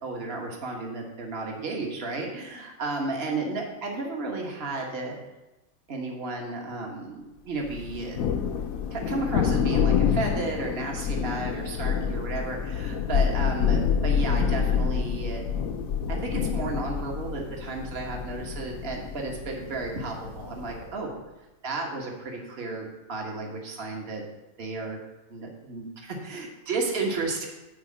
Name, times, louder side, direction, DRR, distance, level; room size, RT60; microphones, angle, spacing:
voice 1, 0.0-5.2 5.9-8.2 8.9-15.4 16.1-21.2 21.6-24.2 24.6-25.0 25.3-27.5, right 3 dB, 45° right, 0 dB, 1.7 m, -33 dB
Thunder, 7.7-20.9, left 7 dB, 70° left, 1.1 m, -27 dB
10.5 x 4.0 x 7.4 m, 1.0 s
omnidirectional pair, 1.5 m